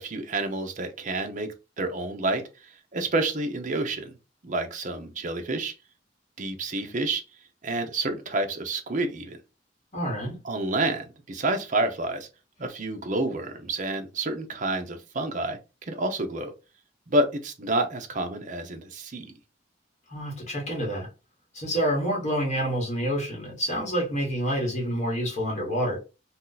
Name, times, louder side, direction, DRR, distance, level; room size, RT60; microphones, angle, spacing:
voice 1, 0.0-4.1 4.4-5.7 6.4-7.2 7.6-9.4 10.4-12.3 12.6-15.6 15.9-16.5 17.1-19.3, right 2 dB, 45° right, 0.6 m, -29 dB
voice 2, 9.9-10.4 20.1-21.1 21.5-26.0, equal, 40° left, 1.2 m, -28 dB
2.7 x 2.3 x 3.9 m
head